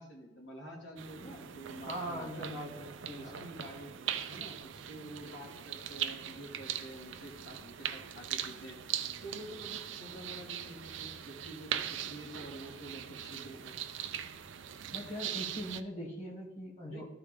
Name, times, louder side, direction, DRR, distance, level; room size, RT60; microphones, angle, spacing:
voice 1, 0.0-2.5 3.2-3.9 4.3-8.8 9.2-13.8 16.9-17.0, right 1 dB, 65° left, -1 dB, 2.3 m, -48 dB
sound 1, 1.0-15.8, right 10 dB, 80° right, 0.5 m, -41 dB
voice 2, 1.8-3.5 14.9-17.0, equal, 40° left, -4 dB, 2.3 m, -41 dB
13.0 x 4.8 x 3.5 m, 1.1 s
head